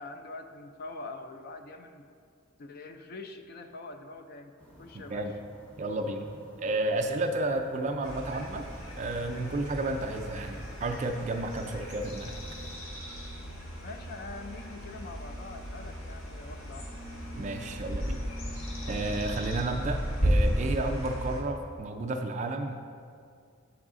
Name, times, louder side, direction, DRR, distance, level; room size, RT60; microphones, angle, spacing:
voice 1, 0.0-2.1 2.6-4.5 4.8-5.3 13.8-16.9, left 3 dB, 50° left, 8 dB, 0.4 m, -44 dB
sound 1, 4.6-12.8, left 1 dB, 5° left, 0.6 m, -54 dB
voice 2, 4.9-5.3 5.8-6.3 6.6-8.7 9.0-12.3 17.4-18.3 18.9-22.8, right 2 dB, 35° right, 4 dB, 0.3 m, -32 dB
sound 2, 8.0-21.4, equal, 70° left, 0.9 m, -34 dB
7.0 x 4.7 x 3.7 m, 2.3 s
head